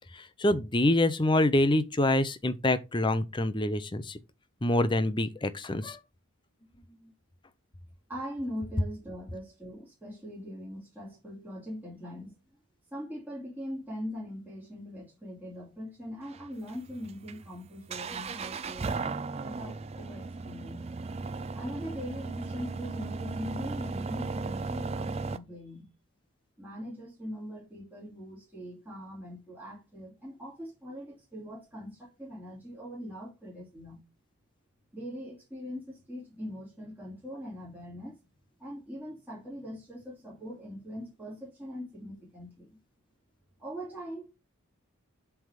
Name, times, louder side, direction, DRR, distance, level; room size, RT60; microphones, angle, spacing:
voice 1, 0.1-4.2 4.6-6.0, left 1 dB, 20° left, 0.6 m, -26 dB
voice 2, 8.1-12.3 12.9-20.9 21.5-25.9 26.6-34.0 34.9-38.2 38.6-42.8 43.6-44.3, equal, 10° right, 2.5 m, -41 dB
sound 1, 16.2-25.4, right 4 dB, 30° right, 0.4 m, -36 dB
7.7 x 3.5 x 4.9 m
head